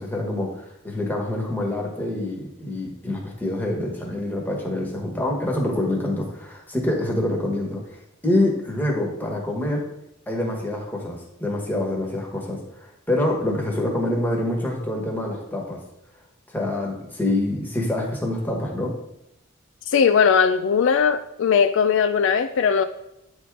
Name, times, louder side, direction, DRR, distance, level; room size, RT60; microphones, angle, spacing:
voice 1, 0.0-9.8 10.3-15.8 16.5-18.9, left 1 dB, 10° left, -1 dB, 1.4 m, -26 dB
voice 2, 19.9-22.8, left 6 dB, 65° left, 9 dB, 0.4 m, -19 dB
9.2 x 3.6 x 4.7 m, 0.85 s
head